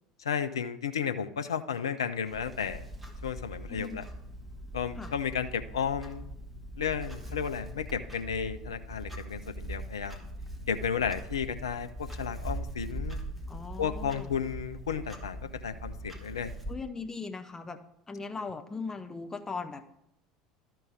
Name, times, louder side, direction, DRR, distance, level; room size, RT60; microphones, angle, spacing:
voice 1, 0.2-2.8 3.2-4.1 4.7-6.3 6.8-10.2 10.7-13.2 13.8-16.5, left 7 dB, 75° left, 10 dB, 0.5 m, -33 dB
Clock, 2.3-16.7, right 1 dB, 5° right, 1.4 m, -41 dB
voice 2, 3.7-4.0 5.0-5.1 13.5-14.3 16.7-19.8, left 4 dB, 20° left, 7 dB, 0.7 m, -39 dB
12.5 x 4.6 x 5.0 m, 0.81 s
figure-of-eight pair, 70°, 3 cm